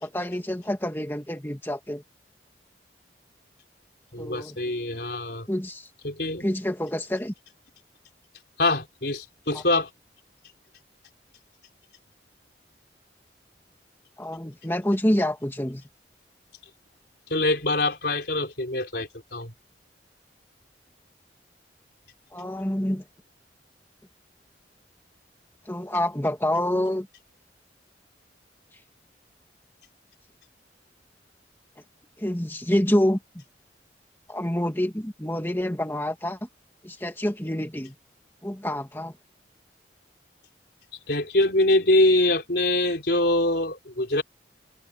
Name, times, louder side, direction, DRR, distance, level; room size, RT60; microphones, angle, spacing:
voice 1, 0.0-2.0 4.2-4.6 5.5-5.9 6.4-7.3 9.5-9.6 14.2-15.8 22.3-23.0 25.7-27.1 32.2-33.4 34.3-36.4 36.8-37.9 38.4-39.1, left 1 dB, 10° left, 2.2 m, -27 dB
voice 2, 4.1-5.5 6.0-6.5 8.6-9.9 17.3-19.5 41.1-44.2, left 2 dB, 60° left, 4.6 m, -24 dB
open air
head